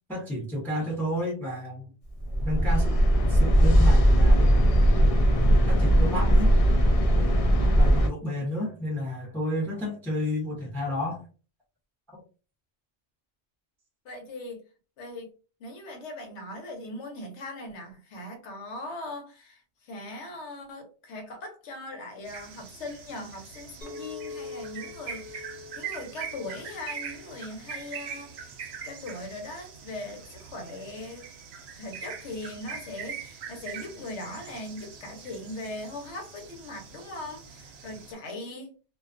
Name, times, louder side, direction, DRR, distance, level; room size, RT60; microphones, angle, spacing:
voice 1, 0.1-1.9 2.4-3.0 3.3-4.5 5.7-6.5 7.7-11.2 12.1-12.2, equal, ahead, 0.6 m, -31 dB
sound 1, 2.2-8.1, equal, 65° left, 0.3 m, -19 dB
voice 2, 14.0-14.6 15.0-15.3 15.6-31.3 31.8-38.7, left 2 dB, 90° left, 1.1 m, -40 dB
sound 2, 22.3-38.1, right 7 dB, 70° right, 0.8 m, -42 dB
Chink clink, 23.8-28.3, left 4 dB, 50° left, 0.9 m, -44 dB
2.3 x 2.2 x 2.4 m
omnidirectional pair, 1.1 m